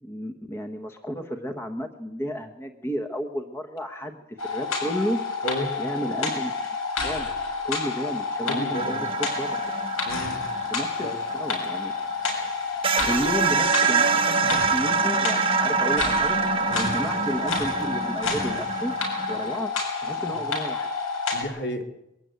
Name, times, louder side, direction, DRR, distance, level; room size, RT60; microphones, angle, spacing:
voice 1, 0.0-5.2 5.8-6.5 7.0-7.3 7.6-9.6 10.7-11.1 11.3-11.9 13.0-16.4 16.7-18.9 19.3-19.7 20.0-20.9, equal, 10° left, 5 dB, 1.0 m, -32 dB
sound 1, 4.4-21.4, left 4 dB, 75° left, 7.1 m, -29 dB
voice 2, 5.4-5.7 8.4-9.0 10.0-10.4 11.0-11.2 16.7-16.9 20.3-20.4 21.3-21.9, equal, 50° left, 3 dB, 2.4 m, -32 dB
sound 2, 8.7-12.1 12.5-12.6 12.8-19.6, right 6 dB, 25° right, 0.9 m, -26 dB
22.0 x 13.0 x 9.4 m, 0.92 s
head